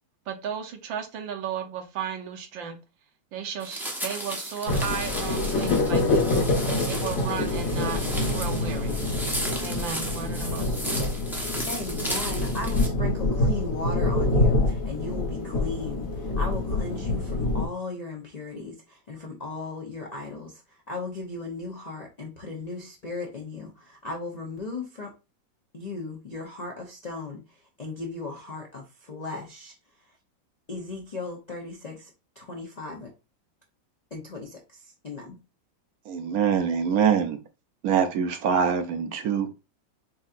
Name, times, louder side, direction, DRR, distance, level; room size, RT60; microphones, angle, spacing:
voice 1, 0.3-2.8 3.3-6.5 6.8-8.0 8.3-9.0 9.6-11.2, right 7 dB, 85° right, 1.6 m, -35 dB
sound 1, 3.6-12.9, equal, 5° right, 0.3 m, -35 dB
sound 2, 4.7-17.7, left 2 dB, 50° left, 1.4 m, -26 dB
voice 2, 11.6-20.6 20.9-25.1 25.7-27.4 27.8-29.7 30.7-32.1 32.4-33.1 34.1-35.4, left 3 dB, 85° left, 0.3 m, -36 dB
voice 3, 36.1-37.4 37.8-39.5, right 7 dB, 65° right, 0.9 m, -24 dB
6.9 x 2.8 x 2.4 m
omnidirectional pair, 2.0 m